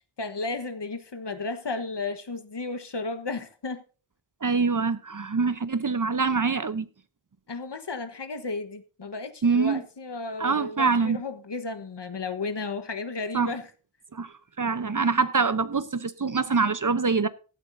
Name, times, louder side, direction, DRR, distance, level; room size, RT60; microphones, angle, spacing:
voice 1, 0.2-3.8 7.5-13.7, left 3 dB, 55° left, 1.3 m, -33 dB
voice 2, 4.4-6.9 9.4-9.8 10.4-11.2 13.3-13.5 14.1-17.3, right 4 dB, 40° right, 0.8 m, -25 dB
15.5 x 12.0 x 2.7 m
wide cardioid pair, 60°, 49 cm